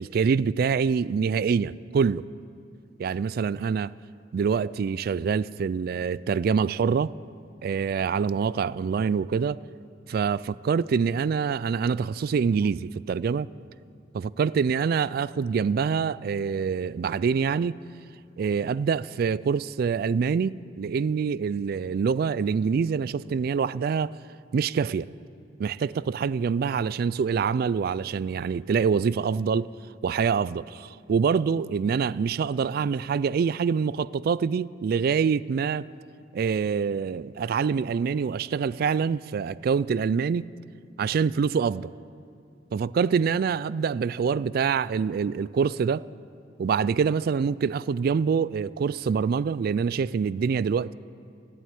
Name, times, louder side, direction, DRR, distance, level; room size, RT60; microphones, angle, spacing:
voice 1, 0.0-2.3 3.0-3.9 4.3-7.1 7.6-9.6 10.1-13.5 14.1-17.8 18.4-24.1 24.5-25.1 25.6-29.7 30.0-35.9 36.3-40.4 41.0-41.9 42.7-46.1 46.6-50.9, right 6 dB, 55° right, 0.3 m, -25 dB
12.5 x 11.0 x 9.0 m
head